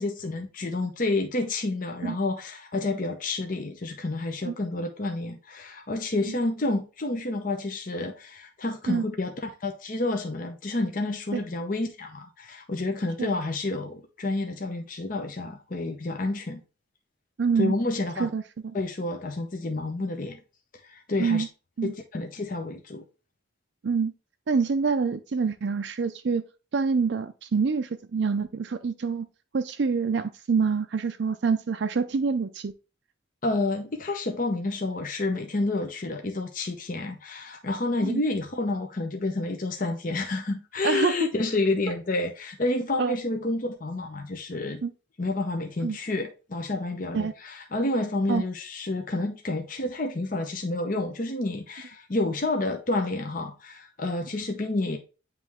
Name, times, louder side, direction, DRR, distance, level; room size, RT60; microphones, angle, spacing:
voice 1, 0.0-9.3 9.6-16.6 17.6-18.3 18.7-20.4 20.8-21.4 21.8-23.0 33.4-44.8 45.2-55.0, left 2 dB, 45° left, 0.7 m, -29 dB
voice 2, 17.4-17.8 18.2-18.8 21.2-21.5 21.8-21.9 23.8-24.1 24.5-26.4 26.7-29.3 29.5-32.7 38.0-38.2 40.8-41.3 43.0-43.2 44.8-44.9 45.8-46.0 47.1-47.3 48.3-48.4, right 5 dB, 60° right, 0.4 m, -26 dB
9.0 x 3.2 x 3.5 m
head